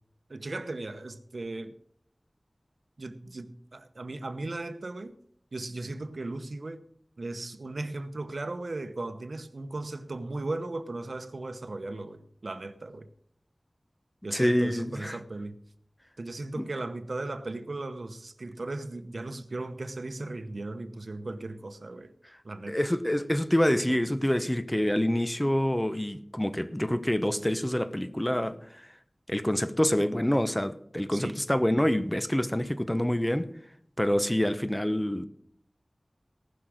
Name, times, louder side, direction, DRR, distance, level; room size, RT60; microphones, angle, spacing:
voice 1, 0.3-1.8 3.0-5.1 5.5-6.8 7.2-13.1 14.2-15.6 16.2-22.1 22.4-22.8 31.1-31.4, right 2 dB, 80° right, 0.9 m, -37 dB
voice 2, 14.3-15.2 16.6-16.7 22.7-28.9 29.3-33.5 34.0-35.3, left 1 dB, 15° left, 1.0 m, -27 dB
18.5 x 6.2 x 6.3 m
wide cardioid pair, 45°, 0 cm